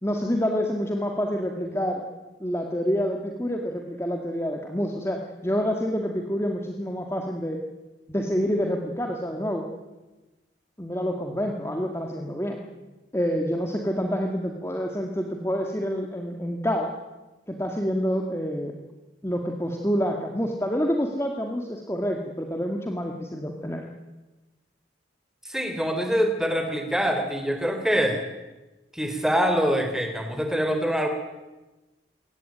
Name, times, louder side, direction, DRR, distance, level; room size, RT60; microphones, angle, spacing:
voice 1, 0.0-2.0 2.4-7.6 8.1-9.7 10.8-12.6 13.1-16.9 17.5-18.7 19.2-23.8, equal, 15° left, 2 dB, 1.9 m, -27 dB
voice 2, 25.4-28.2 28.9-31.1, equal, 5° right, 5 dB, 3.4 m, -24 dB
22.5 x 18.5 x 9.2 m, 1.1 s
head